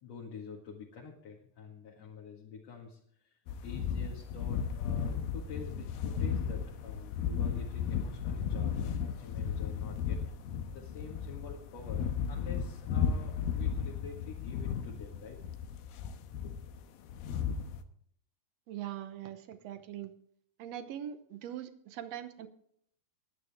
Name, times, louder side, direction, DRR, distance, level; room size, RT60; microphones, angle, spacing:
voice 1, 0.0-10.2 10.7-15.4 16.4-16.8, left 5 dB, 50° left, -1 dB, 2.8 m, -47 dB
sound 1, 3.5-17.8, left 7 dB, 90° left, 2.8 m, -35 dB
voice 2, 18.7-20.1 20.6-22.5, right 11 dB, 70° right, 10 dB, 1.6 m, -42 dB
21.5 x 9.5 x 3.6 m, 0.66 s
omnidirectional pair, 4.1 m